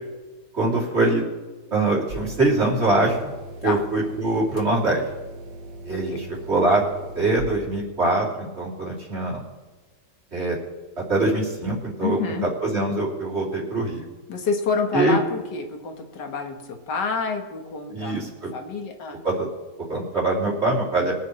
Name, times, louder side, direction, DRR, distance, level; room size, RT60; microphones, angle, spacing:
voice 1, 0.5-1.2 1.7-3.3 3.6-5.0 5.8-6.8 7.1-9.4 10.3-10.6 11.0-14.0 14.9-15.2 17.9-18.5 19.2-19.5 19.9-21.1, right 2 dB, 40° right, -5 dB, 3.2 m, -23 dB
sound 1, 2.1-7.4, right 2 dB, 80° right, 1.7 m, -40 dB
voice 2, 12.0-12.5 14.3-18.3 18.5-19.2, left 5 dB, 80° left, 4 dB, 2.0 m, -28 dB
22.5 x 8.5 x 3.2 m, 1.2 s
omnidirectional pair, 1.8 m